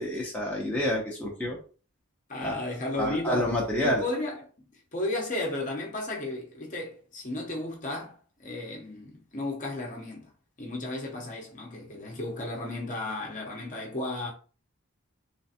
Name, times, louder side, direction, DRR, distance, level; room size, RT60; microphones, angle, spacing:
voice 1, 0.0-1.6 2.4-2.7 2.9-4.0, left 1 dB, 5° left, 0.7 m, -28 dB
voice 2, 2.3-3.5 3.8-4.4 4.9-10.3 10.6-14.3, left 2 dB, 35° left, 0.8 m, -34 dB
3.2 x 3.1 x 2.8 m
head